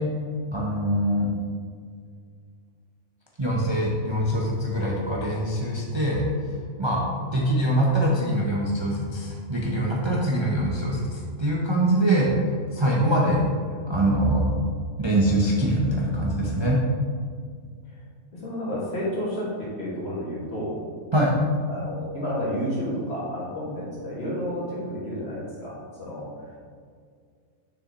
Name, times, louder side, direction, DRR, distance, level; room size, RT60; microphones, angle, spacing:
voice 1, 0.5-1.3 3.4-6.2 6.8-7.0 7.3-12.3 12.7-13.4 13.9-14.5 15.0-16.8 21.1-21.4, right 1 dB, 25° right, -4 dB, 0.6 m, -23 dB
voice 2, 18.3-20.8 21.7-26.5, equal, 50° left, -7 dB, 2.2 m, -31 dB
6.9 x 6.3 x 3.0 m, 2.1 s
omnidirectional pair, 1.4 m